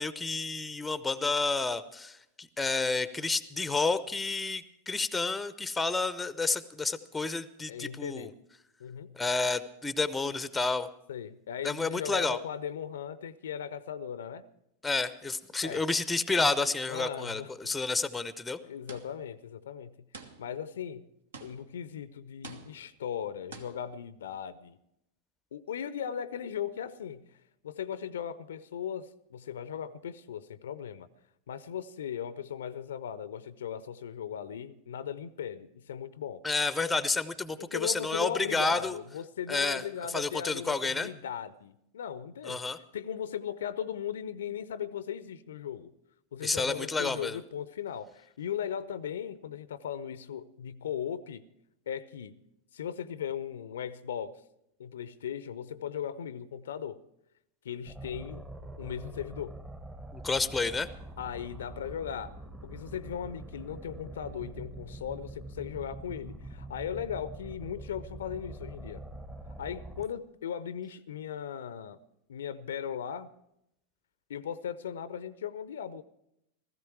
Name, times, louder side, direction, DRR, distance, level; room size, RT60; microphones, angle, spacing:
voice 1, 0.0-8.3 9.2-10.9 11.6-12.4 14.8-18.6 36.4-39.0 39.5-39.8 40.1-41.1 42.5-42.8 46.4-47.4 60.1-60.9, left 3 dB, 10° left, 0.6 m, -30 dB
voice 2, 7.7-8.3 8.8-9.2 11.1-14.4 15.6-15.8 16.9-17.7 18.6-19.9 20.2-21.0 21.4-24.8 25.5-27.2 27.6-31.1 31.5-36.4 37.6-42.6 42.9-45.9 46.3-51.5 51.9-52.4 52.7-54.4 54.8-57.0 57.6-58.4 58.8-59.6 61.2-62.4 62.6-69.0 69.6-72.0 72.3-73.3 74.3-76.0, left 8 dB, 65° left, 0.5 m, -38 dB
sound 1, 18.9-19.4 20.1-20.7 21.3-21.9 22.4-23.0 23.5-23.9, right 4 dB, 65° right, 1.2 m, -48 dB
sound 2, 57.9-70.1, right 1 dB, 15° right, 1.0 m, -44 dB
16.5 x 14.5 x 4.7 m
figure-of-eight pair, 90°, 0 cm